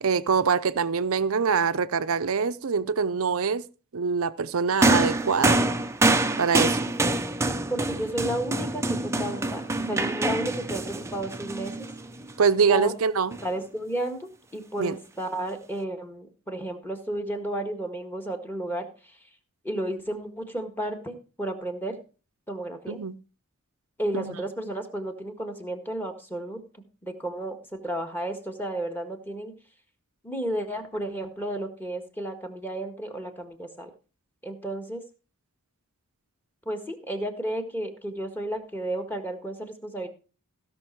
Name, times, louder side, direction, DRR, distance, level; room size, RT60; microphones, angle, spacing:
voice 1, 0.0-3.6 3.9-5.6 6.4-6.8 12.4-13.4 14.8-15.0 22.9-23.1 24.1-24.4, right 5 dB, 65° right, 0.6 m, -24 dB
sound 1, 4.8-12.3 13.3-13.5, right 2 dB, 15° right, 0.6 m, -25 dB
voice 2, 7.7-11.9 12.7-12.9 13.4-18.9 19.6-22.0 22.5-23.0 24.0-26.6 27.0-29.5 30.2-33.9 34.4-35.0 36.6-40.1, right 1 dB, 10° left, 1.6 m, -32 dB
16.0 x 6.1 x 4.6 m
head